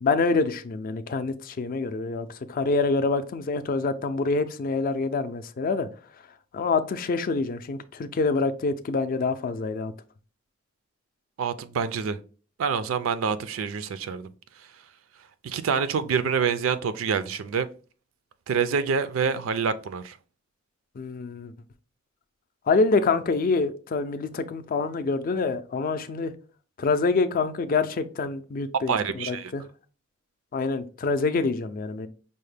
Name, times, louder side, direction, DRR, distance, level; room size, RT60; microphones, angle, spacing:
voice 1, 0.0-5.9 6.5-9.9 21.0-21.5 22.7-26.3 26.8-29.6 30.5-32.1, left 4 dB, 45° left, 0.4 m, -26 dB
voice 2, 11.4-12.2 12.6-14.3 15.4-17.7 18.5-20.2 28.9-29.5, right 6 dB, 70° right, 0.4 m, -26 dB
5.4 x 2.1 x 3.3 m
head